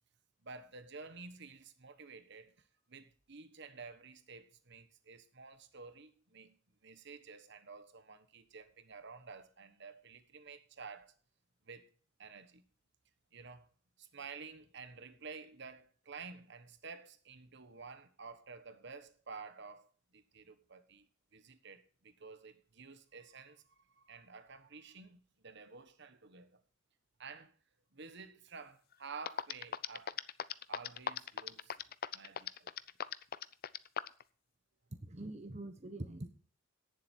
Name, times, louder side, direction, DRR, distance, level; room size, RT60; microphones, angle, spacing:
voice 1, 0.4-6.6 6.8-11.1 11.7-11.9 12.2-12.6 13.3-13.7 14.0-21.0 21.3-26.6 27.2-27.5 27.9-30.2 30.7-31.8 32.1-32.7, right 4 dB, 60° right, 1.4 m, -51 dB
sound 1, 28.9-29.0 29.3-34.2, left 8 dB, 50° left, 0.6 m, -38 dB
voice 2, 35.0-36.3, right 1 dB, 35° right, 1.1 m, -44 dB
17.0 x 7.5 x 4.5 m
head